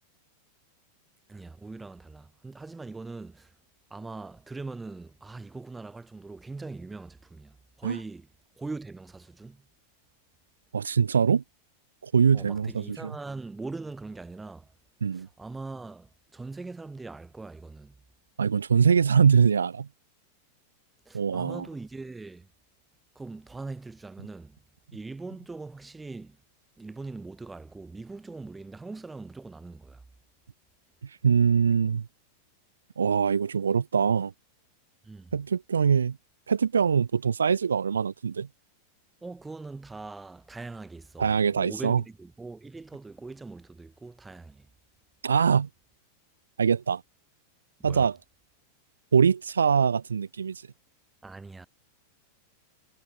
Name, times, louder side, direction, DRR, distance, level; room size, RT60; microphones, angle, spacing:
voice 1, 1.3-3.5 3.9-8.3 8.6-9.6 12.3-14.7 15.1-18.0 21.1-22.5 23.2-24.6 24.9-26.4 26.8-30.0 35.0-35.3 39.2-44.7 47.8-48.1 51.2-51.7, right 3 dB, 10° right, 5.6 m, -41 dB
voice 2, 10.7-11.4 12.0-13.1 15.0-15.3 18.4-19.9 21.1-21.7 31.0-32.0 33.0-34.3 35.3-36.2 36.5-38.5 41.2-42.0 45.2-45.7 46.6-47.0 47.8-48.2 49.1-50.6, right 6 dB, 70° right, 0.3 m, -23 dB
figure-of-eight pair, 90°, 0 cm